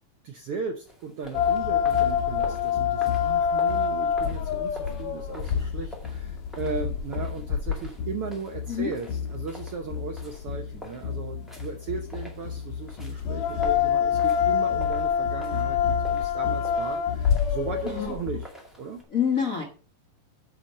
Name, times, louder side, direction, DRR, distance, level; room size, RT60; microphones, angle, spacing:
voice 1, 0.2-18.5 18.8-19.0, right 5 dB, 75° right, 4 dB, 1.3 m, -36 dB
sound 1, 0.8-19.0, equal, ahead, 1.5 m, -48 dB
sound 2, 1.3-18.5, left 8 dB, 90° left, 2.7 m, -27 dB
voice 2, 17.8-18.2 19.1-19.6, left 8 dB, 70° left, 2 dB, 0.7 m, -26 dB
10.0 x 4.3 x 6.5 m, 0.38 s
omnidirectional pair, 3.7 m